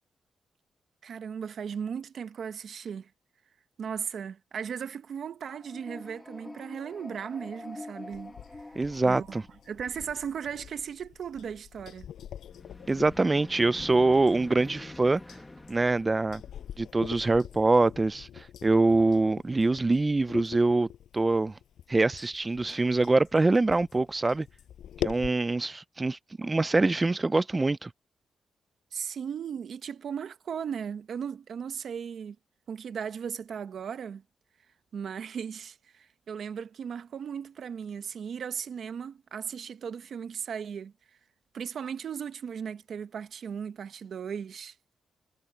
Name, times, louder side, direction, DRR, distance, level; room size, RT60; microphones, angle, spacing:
voice 1, 1.0-3.1 3.8-8.7 9.0-9.4 9.7-12.1 28.9-32.4 32.7-34.2 34.9-40.9 41.5-44.7, right 7 dB, 60° right, 1.2 m, -37 dB
sound 1, 5.5-9.9 12.5-17.4, left 2 dB, 15° left, 1.5 m, -46 dB
sound 2, 8.1-25.3, left 10 dB, 80° left, 7.8 m, -44 dB
voice 2, 8.8-9.4 12.9-15.2 15.7-16.4 16.8-20.9 21.1-21.5 21.9-24.5 25.0-27.9, right 3 dB, 20° right, 0.4 m, -24 dB
cardioid pair, 125°, 0 cm